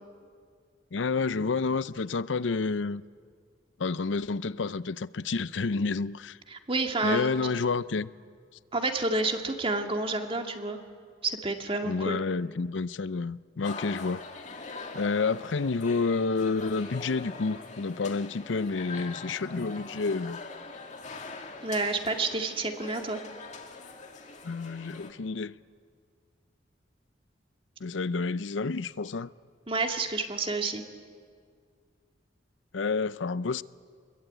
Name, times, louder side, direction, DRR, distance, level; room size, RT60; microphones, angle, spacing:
voice 1, 0.9-3.0 3.8-6.4 7.0-8.1 11.8-14.2 14.9-20.4 24.4-25.5 27.8-29.3 32.7-33.6, left 4 dB, 85° left, 0.6 m, -29 dB
voice 2, 6.5-7.3 8.7-10.8 11.2-12.2 21.6-23.2 29.7-30.8, right 3 dB, 30° right, 2.1 m, -29 dB
sound 1, 13.6-25.1, left 3 dB, 40° left, 2.0 m, -43 dB
27.5 x 22.0 x 9.2 m
head